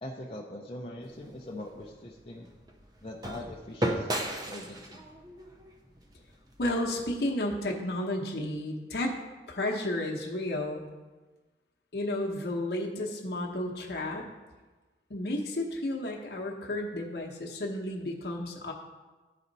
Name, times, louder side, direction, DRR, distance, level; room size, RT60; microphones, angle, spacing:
voice 1, 0.0-2.5 3.0-5.0, left 1 dB, 30° left, -3 dB, 0.5 m, -42 dB
sound 1, 1.0-7.2, right 1 dB, 20° right, 0.6 m, -37 dB
voice 2, 6.6-9.1 9.5-10.9 11.9-14.3 15.1-18.7, left 1 dB, 60° left, -1 dB, 0.9 m, -32 dB
10.5 x 4.2 x 4.0 m, 1.2 s
head